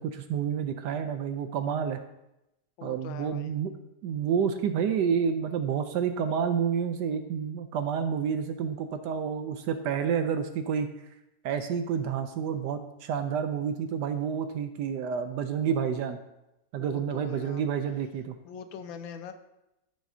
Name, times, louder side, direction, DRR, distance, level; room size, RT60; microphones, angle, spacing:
voice 1, 0.0-2.0 2.8-3.7 4.0-10.9 11.4-16.2 16.7-18.4, right 7 dB, 70° right, 8 dB, 1.1 m, -29 dB
voice 2, 2.8-3.6 16.8-17.6 18.4-19.3, left 7 dB, 90° left, 8 dB, 1.4 m, -42 dB
14.0 x 5.1 x 2.7 m, 0.89 s
omnidirectional pair, 2.1 m